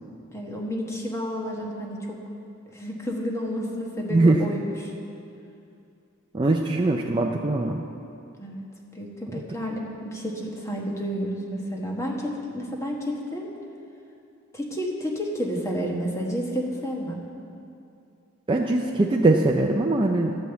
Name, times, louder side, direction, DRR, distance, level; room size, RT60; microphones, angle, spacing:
voice 1, 0.3-2.2 2.7-4.7 8.4-8.6 8.9-13.5 14.5-17.2, equal, 15° left, -1 dB, 1.3 m, -30 dB
voice 2, 4.1-4.4 6.3-7.8 9.3-9.4 18.5-20.4, right 2 dB, 25° right, 0 dB, 0.5 m, -21 dB
12.5 x 5.3 x 7.9 m, 2.6 s
head